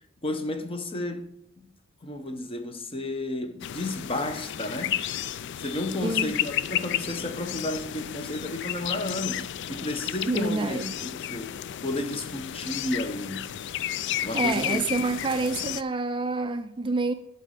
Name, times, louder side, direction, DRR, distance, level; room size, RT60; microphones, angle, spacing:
voice 1, 0.2-1.3 2.0-5.0 5.6-13.4 14.2-14.8, left 1 dB, 25° left, 0.8 m, -32 dB
sound 1, 3.6-15.8, left 11 dB, 60° left, 0.4 m, -32 dB
voice 2, 6.0-6.4 10.3-11.0 14.3-17.1, right 3 dB, 25° right, 0.4 m, -28 dB
11.5 x 4.1 x 6.5 m
head